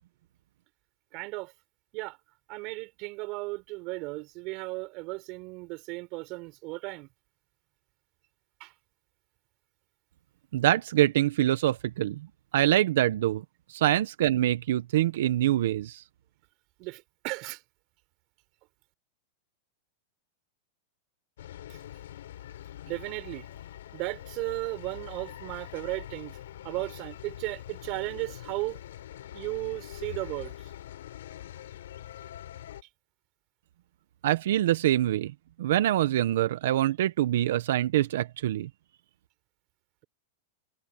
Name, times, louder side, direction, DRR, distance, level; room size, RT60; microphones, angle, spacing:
voice 1, 1.1-1.5 1.9-2.2 2.5-7.1 8.6-8.7 16.8-17.6 21.7-21.8 22.9-23.5 23.9-26.4 26.6-28.8 29.3-30.7, right 24 dB, 45° right, 4.3 m, -35 dB
voice 2, 10.5-12.3 12.5-16.0 34.2-35.3 35.6-38.7, right 13 dB, 70° right, 1.1 m, -25 dB
sound 1, 21.4-32.8, left 12 dB, 80° left, 7.9 m, -44 dB
supercardioid pair, 145°, 0 cm